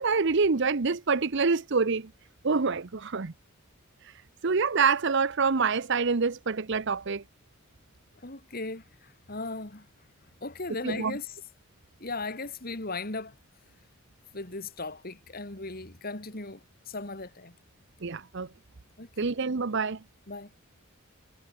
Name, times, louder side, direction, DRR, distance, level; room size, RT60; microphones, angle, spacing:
voice 1, 0.0-2.1 2.4-3.3 4.4-7.2 10.8-11.1 18.0-18.5 19.2-20.0, right 4 dB, 55° right, 0.8 m, -26 dB
voice 2, 8.2-9.9 10.4-11.3 12.0-13.3 14.3-17.5 19.0-19.3 20.3-20.5, left 3 dB, 45° left, 2.8 m, -37 dB
head